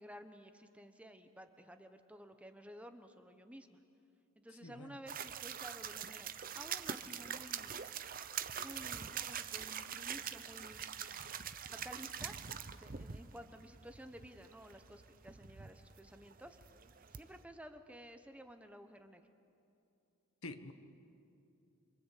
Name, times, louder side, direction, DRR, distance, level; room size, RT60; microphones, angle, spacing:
voice 1, 0.0-3.8 4.4-7.7 8.6-11.5 11.8-12.4 12.8-16.6 17.1-19.3, equal, 5° right, 7 dB, 1.0 m, -53 dB
voice 2, 4.6-5.0 9.9-10.1 20.4-20.7, left 2 dB, 70° left, 8 dB, 1.4 m, -48 dB
sound 1, 5.1-17.4, right 8 dB, 40° right, 0.8 m, -44 dB
27.0 x 24.5 x 8.4 m, 2.7 s
head